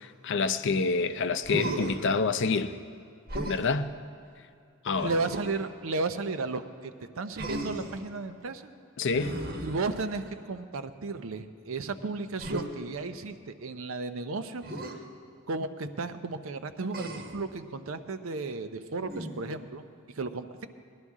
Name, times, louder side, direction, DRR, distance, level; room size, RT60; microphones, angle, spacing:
voice 1, 0.0-2.8 3.5-3.9 4.8-5.1 9.0-9.3, left 4 dB, 60° left, 0.5 m, -27 dB
Human voice, 1.4-2.1 3.3-3.6 5.0-5.6 7.4-8.0 9.1-10.3 12.4-12.7 14.6-14.9 16.9-17.4 19.0-19.5, right 1 dB, 45° right, 1.2 m, -36 dB
voice 2, 5.0-8.7 9.6-15.0 15.5-19.8 20.1-20.7, right 3 dB, 65° right, 0.6 m, -34 dB
19.0 x 11.5 x 3.6 m
head